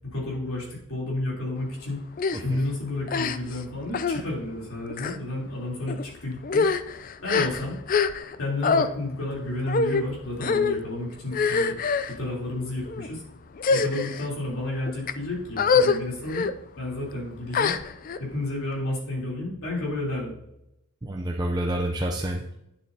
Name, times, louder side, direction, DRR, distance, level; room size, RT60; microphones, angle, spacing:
voice 1, 0.0-2.0 2.3-6.6 7.2-7.8 8.4-11.7 12.1-13.2 13.7-16.5 16.8-17.7 18.2-20.4, left 2 dB, 70° left, -3 dB, 3.4 m, -31 dB
sound 1, 2.2-2.4 3.1-3.6 3.9-4.2 4.9-5.2 5.9-6.0 6.4-8.4 8.6-8.9 9.7-10.0 10.4-10.8 11.3-12.1 12.8-13.1 13.6-14.3 14.9-15.1 15.6-16.0 16.3-16.5 17.5-18.2, left 5 dB, 40° left, 0.3 m, -24 dB
voice 2, 21.0-22.6, right 1 dB, 20° right, 0 dB, 0.5 m, -28 dB
9.6 x 7.7 x 2.8 m, 0.83 s
head